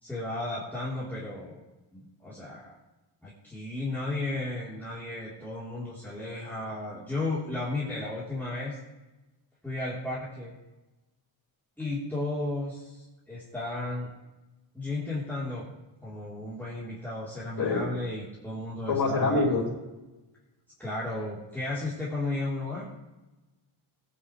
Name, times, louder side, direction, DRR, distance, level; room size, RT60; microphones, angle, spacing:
voice 1, 0.0-1.6 1.9-2.7 3.2-8.8 9.6-10.5 11.8-14.1 14.7-15.7 16.0-19.6 20.8-22.9, left 2 dB, 5° left, -9 dB, 3.6 m, -34 dB
voice 2, 18.9-19.7, left 3 dB, 50° left, -5 dB, 4.8 m, -25 dB
20.5 x 10.0 x 3.3 m, 1.1 s
cardioid pair, 110°, 48 cm